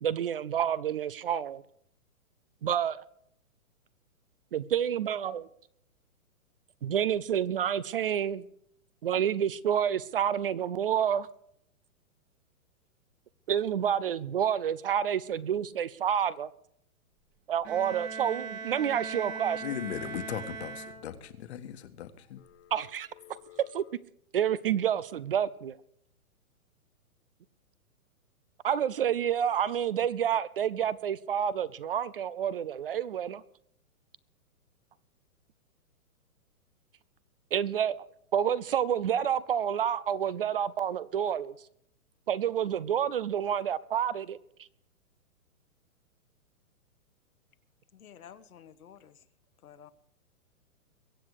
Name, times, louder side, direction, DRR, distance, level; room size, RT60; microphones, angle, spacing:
voice 1, 0.0-1.6 2.6-3.0 4.5-5.5 6.8-8.4 9.0-11.3 13.5-16.5 17.5-19.6 22.7-23.1 23.7-23.8 24.3-25.8 28.6-33.4 37.5-37.9 38.3-41.5 42.3-44.4, right 9 dB, 40° right, 0.6 m, -29 dB
Bowed string instrument, 17.6-21.4, right 5 dB, 20° right, 1.6 m, -39 dB
voice 2, 19.6-22.9 23.1-23.9, left 10 dB, 50° left, 1.6 m, -40 dB
voice 3, 47.9-49.2 49.6-49.9, left 8 dB, 80° left, 1.5 m, -52 dB
23.0 x 8.2 x 4.8 m
hypercardioid pair, 160°, 43 cm